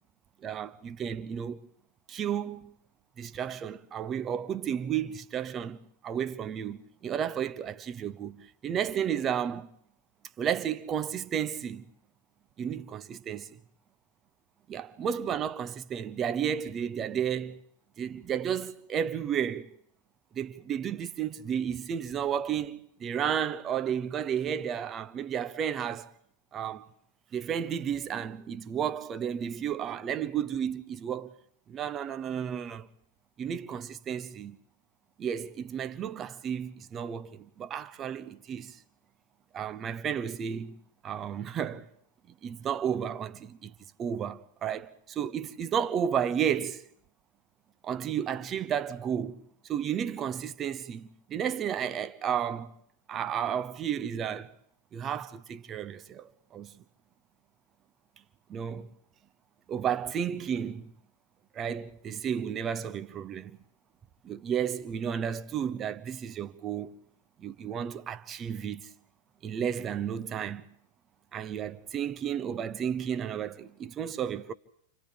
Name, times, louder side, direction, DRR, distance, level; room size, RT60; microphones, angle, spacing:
voice 1, 0.4-1.6 2.1-2.7 3.2-5.8 6.0-9.7 10.4-11.9 12.6-13.6 14.7-17.6 18.0-19.8 20.3-26.1 26.5-26.9 27.3-31.4 31.7-32.9 33.4-34.6 35.2-38.8 39.5-40.8 41.0-41.9 42.4-43.7 44.0-46.9 47.8-52.7 53.1-54.5 54.9-56.8 58.5-58.9 59.7-60.9 61.5-63.6 64.2-66.9 67.4-68.9 69.4-70.8 71.3-74.5, right 8 dB, 25° right, 0.8 m, -32 dB
29.5 x 27.0 x 3.6 m
figure-of-eight pair, 90°, 0 cm